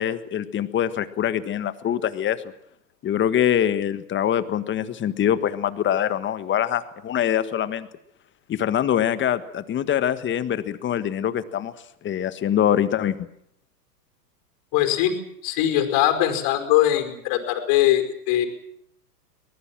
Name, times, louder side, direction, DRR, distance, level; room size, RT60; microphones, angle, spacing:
voice 1, 0.0-2.4 3.0-7.9 8.5-11.7 12.0-13.2, left 10 dB, 20° left, 13 dB, 1.6 m, -24 dB
voice 2, 14.7-15.2 15.4-18.5, left 12 dB, 45° left, 7 dB, 5.2 m, -21 dB
24.0 x 20.5 x 7.6 m, 0.71 s
hypercardioid pair, 115°, 50 cm